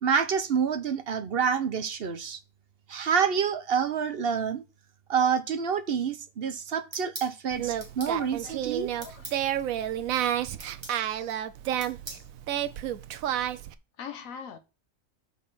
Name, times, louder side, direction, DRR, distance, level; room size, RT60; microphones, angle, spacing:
voice 1, 0.0-2.4 2.9-4.6 5.1-8.9, right 7 dB, 50° right, 0.9 m, -27 dB
sound 1, 6.9-7.3 7.8-8.2 9.0-9.4 10.6-11.0 11.8-12.3, right 1 dB, 20° right, 1.8 m, -41 dB
Singing, 7.5-13.7, right 11 dB, 90° right, 1.1 m, -31 dB
voice 2, 8.2-9.4 14.0-14.6, left 7 dB, 85° left, 1.4 m, -43 dB
6.3 x 5.4 x 5.8 m
omnidirectional pair, 1.4 m